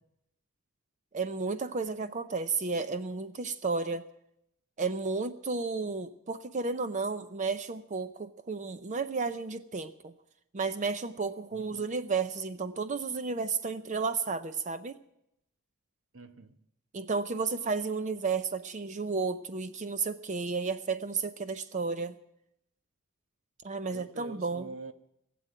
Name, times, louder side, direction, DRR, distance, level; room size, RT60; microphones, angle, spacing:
voice 1, 1.1-4.0 4.8-10.1 10.5-15.0 16.9-22.1 23.6-24.7, right 4 dB, 35° right, 0.5 m, -32 dB
voice 2, 11.5-11.8 16.1-16.6 23.9-24.9, right 3 dB, 65° right, 1.1 m, -46 dB
19.0 x 7.7 x 9.1 m
head